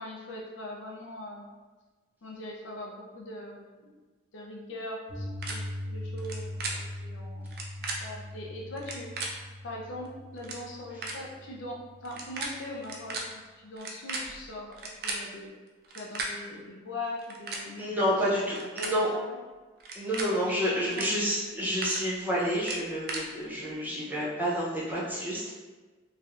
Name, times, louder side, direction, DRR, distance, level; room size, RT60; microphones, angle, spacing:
voice 1, 0.0-1.6 2.2-3.9 4.3-7.5 8.0-9.1 9.6-15.5 15.9-19.3 20.2-21.1, left 1 dB, 85° left, -2 dB, 0.5 m, -41 dB
Piano, 5.1-13.2, left 1 dB, 80° right, 1.0 m, -41 dB
sound 1, 5.4-5.5 6.2-6.3 6.6-6.7 7.5-8.0 8.8-9.3 10.1-10.2 10.4-10.6 11.0-11.2 12.0-12.5 12.8-13.2 13.8-15.2 15.8-16.3 17.1-17.6 18.4-18.9 19.8-20.3 20.9-21.1 21.4-22.0 22.6-23.2, right 3 dB, 55° right, 0.4 m, -35 dB
voice 2, 17.8-19.1 19.9-25.5, equal, 10° right, -7 dB, 0.6 m, -29 dB
3.1 x 2.5 x 2.4 m, 1.3 s
head